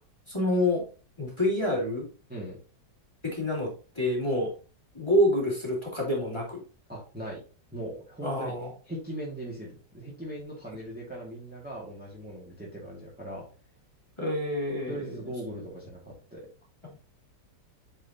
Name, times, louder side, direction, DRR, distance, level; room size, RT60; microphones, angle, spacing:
voice 1, 0.3-0.8 1.2-2.1 3.2-4.5 4.9-6.6 8.2-8.7 14.2-15.2 16.8-17.0, left 1 dB, 15° left, -3 dB, 2.9 m, -27 dB
voice 2, 6.9-7.4 7.7-8.5 8.9-13.4 14.9-16.4, right 1 dB, 5° right, -5 dB, 2.0 m, -39 dB
8.7 x 4.8 x 2.8 m, 0.36 s
omnidirectional pair, 1.9 m